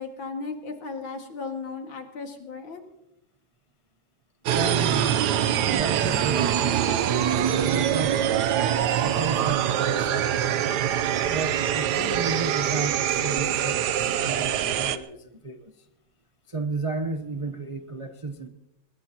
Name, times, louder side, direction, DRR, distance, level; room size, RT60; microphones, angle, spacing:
voice 1, 0.0-2.8, left 4 dB, 85° left, 4 dB, 2.8 m, -35 dB
voice 2, 4.5-5.3 5.7-8.5 9.0-10.4 11.0-15.7 16.5-18.5, right 3 dB, 40° right, 6 dB, 0.4 m, -33 dB
sound 1, 4.5-15.0, right 10 dB, 65° right, 1.2 m, -24 dB
22.0 x 20.5 x 2.9 m, 0.86 s
omnidirectional pair, 2.1 m